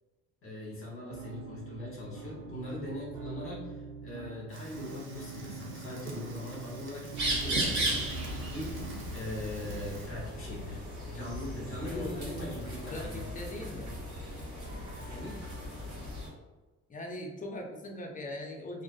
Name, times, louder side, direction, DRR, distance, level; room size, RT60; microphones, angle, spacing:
voice 1, 0.4-8.0 8.4-8.8 9.1-13.4 15.0-15.4, left 1 dB, 45° left, -5 dB, 0.9 m, -41 dB
sound 1, 1.1-9.1, right 3 dB, 90° right, 0.6 m, -44 dB
Fire, 4.5-10.1, right 3 dB, 40° right, 0.6 m, -44 dB
sound 2, 7.1-16.3, right 1 dB, 65° right, 1.1 m, -36 dB
voice 2, 11.9-12.2 12.9-14.0 16.9-18.8, left 1 dB, 25° left, 1 dB, 0.5 m, -41 dB
2.4 x 2.4 x 2.3 m, 1.2 s
cardioid pair, 90°, 30 cm